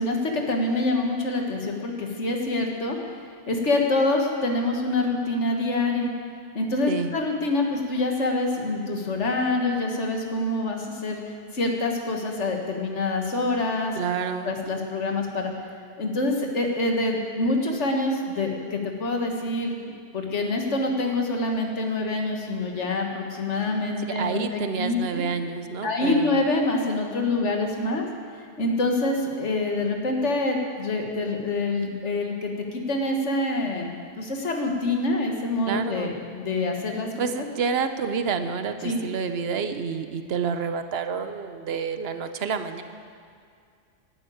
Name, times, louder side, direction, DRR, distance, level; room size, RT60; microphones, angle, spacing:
voice 1, 0.0-3.0 3.5-6.1 6.5-14.0 14.4-15.5 16.0-19.8 20.1-25.2 25.8-28.0 28.6-37.1 38.8-39.0, left 2 dB, 85° left, 2 dB, 1.9 m, -26 dB
voice 2, 13.9-14.5 24.2-26.4 35.7-36.2 37.2-42.8, right 6 dB, 65° right, 9 dB, 1.0 m, -29 dB
11.5 x 9.9 x 8.6 m, 2.2 s
omnidirectional pair, 1.2 m